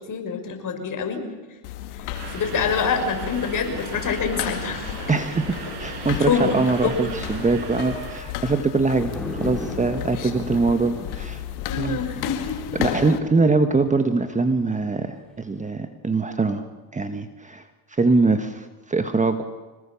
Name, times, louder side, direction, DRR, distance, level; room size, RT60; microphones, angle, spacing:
voice 1, 0.1-1.2 2.3-5.0 6.1-6.6 6.8-7.0 10.2-10.3 11.7-12.7, left 6 dB, 40° left, 5 dB, 5.9 m, -26 dB
sound 1, 1.6-13.2, left 11 dB, 75° left, 2.5 m, -33 dB
Subway metro underground, 2.1-8.2, right 5 dB, 55° right, 7.7 m, -37 dB
voice 2, 5.1-11.4 11.8-12.0 12.7-16.6 16.9-19.4, right 3 dB, 15° right, 8 dB, 1.5 m, -23 dB
sound 2, 8.8-15.7, left 2 dB, ahead, 5.5 m, -38 dB
26.5 x 20.0 x 7.2 m, 1.3 s
supercardioid pair, 100°, 48 cm